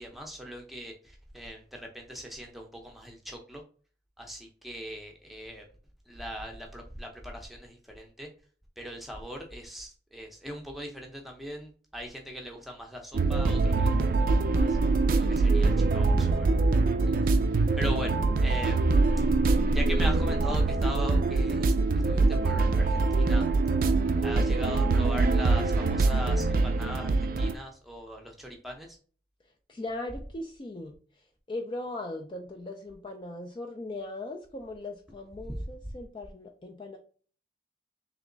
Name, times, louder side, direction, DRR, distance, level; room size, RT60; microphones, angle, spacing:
voice 1, 0.0-3.6 4.2-5.6 6.1-8.3 8.8-14.8 15.2-16.6 17.0-17.4 17.8-18.9 19.7-21.7 22.1-23.4 24.2-29.0 35.5-35.6, equal, ahead, 1 dB, 0.7 m, -40 dB
sound 1, 13.1-27.5, right 3 dB, 50° right, 0.4 m, -24 dB
voice 2, 18.1-18.6 29.7-37.0, left 2 dB, 25° left, 3 dB, 0.4 m, -39 dB
3.4 x 3.0 x 3.8 m, 0.42 s
head